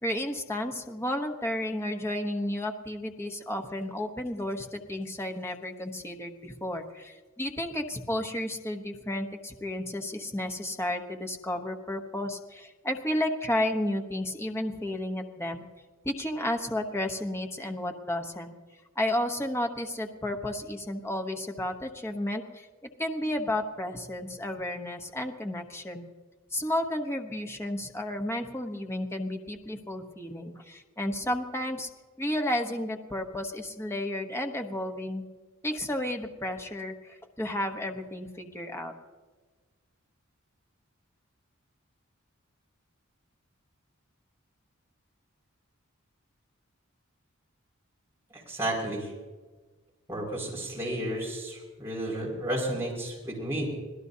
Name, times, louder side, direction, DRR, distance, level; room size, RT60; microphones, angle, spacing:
voice 1, 0.0-15.6 16.0-18.5 19.0-22.7 23.0-26.1 26.5-31.9 32.2-35.3 35.6-38.9, left 1 dB, 10° left, 4 dB, 1.0 m, -32 dB
voice 2, 48.5-49.1 50.1-53.7, right 1 dB, 10° right, -4 dB, 5.5 m, -32 dB
26.0 x 17.5 x 2.8 m, 1.3 s
head